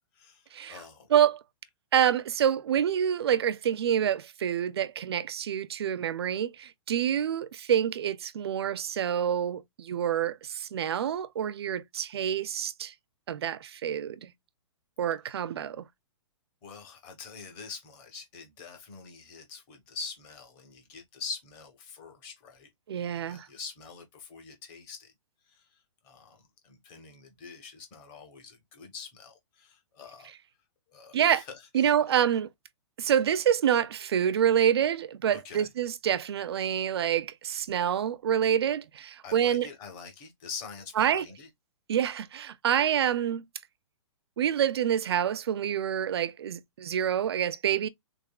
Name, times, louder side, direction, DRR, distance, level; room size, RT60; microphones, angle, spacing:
voice 1, 0.1-1.1 16.6-22.7 22.9-25.1 25.5-30.3 30.9-32.2 35.3-35.7 39.2-41.5, left 5 dB, 20° left, 0.8 m, -45 dB
voice 2, 1.1-1.4 1.9-12.9 13.3-14.3 15.0-15.9 22.9-23.5 31.1-31.4 31.7-32.5 33.0-39.7 41.0-41.3 41.9-43.4 44.4-47.9, right 9 dB, 55° right, 0.4 m, -27 dB
3.5 x 3.5 x 2.2 m
hypercardioid pair, 175°, 16 cm